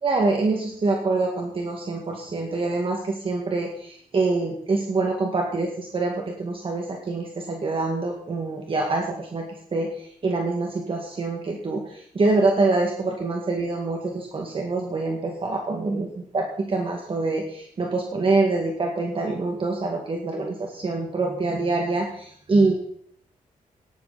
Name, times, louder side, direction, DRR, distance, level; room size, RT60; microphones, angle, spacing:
voice 1, 0.0-9.4 9.7-16.1 16.3-22.7, right 3 dB, 40° right, 0 dB, 2.1 m, -25 dB
19.0 x 12.5 x 4.2 m, 0.64 s
wide cardioid pair, 175°, 14 cm